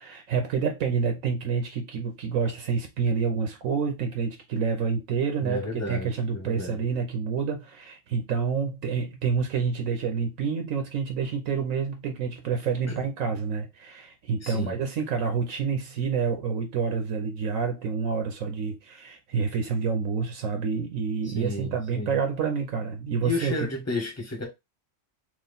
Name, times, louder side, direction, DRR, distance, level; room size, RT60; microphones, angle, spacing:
voice 1, 0.0-23.5, right 5 dB, 80° right, 1.2 m, -28 dB
voice 2, 5.4-6.8 12.9-13.1 14.4-14.8 21.2-22.2 23.2-24.5, left 2 dB, 15° left, 1.1 m, -32 dB
3.1 x 3.0 x 4.0 m
omnidirectional pair, 1.4 m